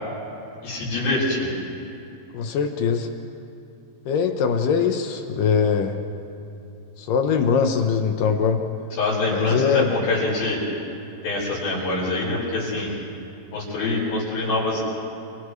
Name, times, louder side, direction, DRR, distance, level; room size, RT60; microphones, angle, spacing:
voice 1, 0.6-1.5 9.0-10.6 11.2-12.9 13.5-14.8, left 2 dB, 55° left, -5 dB, 7.3 m, -25 dB
voice 2, 2.3-3.1 4.1-6.0 7.0-8.6 9.3-9.9, left 6 dB, 75° left, 5 dB, 2.1 m, -22 dB
29.5 x 28.5 x 3.2 m, 2.7 s
omnidirectional pair, 5.0 m